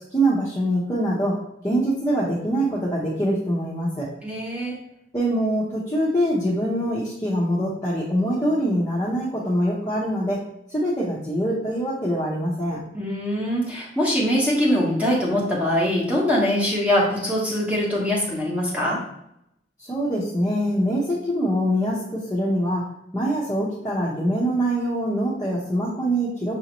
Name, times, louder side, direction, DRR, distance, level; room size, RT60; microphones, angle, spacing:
voice 1, 0.1-4.1 5.1-10.4 10.7-12.8 19.8-22.9 23.1-26.6, right 1 dB, 15° left, -9 dB, 0.9 m, -24 dB
voice 2, 4.2-4.8 12.9-19.0, left 1 dB, 10° right, -4 dB, 1.1 m, -23 dB
6.3 x 2.7 x 3.0 m, 0.80 s
head